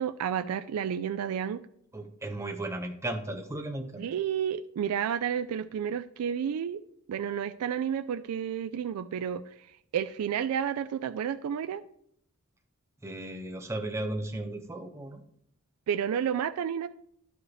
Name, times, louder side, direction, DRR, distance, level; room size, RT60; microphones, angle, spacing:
voice 1, 0.0-1.6 4.0-6.8 7.1-9.4 9.9-11.8 15.9-16.9, right 8 dB, 85° right, 11 dB, 0.3 m, -31 dB
voice 2, 1.9-4.0 13.0-15.2, right 1 dB, 15° right, 5 dB, 0.5 m, -35 dB
11.0 x 5.0 x 3.2 m, 0.70 s
head